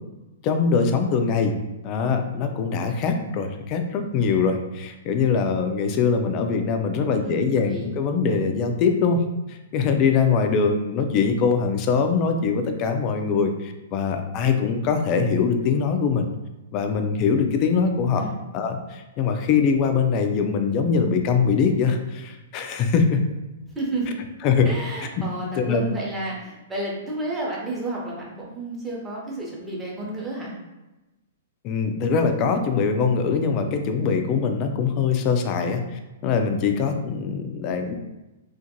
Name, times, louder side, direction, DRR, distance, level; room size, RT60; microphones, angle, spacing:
voice 1, 0.4-1.6 1.8-9.2 9.5-16.3 16.7-18.3 18.5-23.2 24.4-24.7 25.6-25.8 31.6-37.9, left 5 dB, 35° left, 6 dB, 0.3 m, -22 dB
voice 2, 7.1-7.9 18.2-18.4 23.7-24.2 24.6-30.5, right 2 dB, 10° right, -4 dB, 0.8 m, -31 dB
2.5 x 2.4 x 2.7 m, 1.1 s
figure-of-eight pair, 110°, 0 cm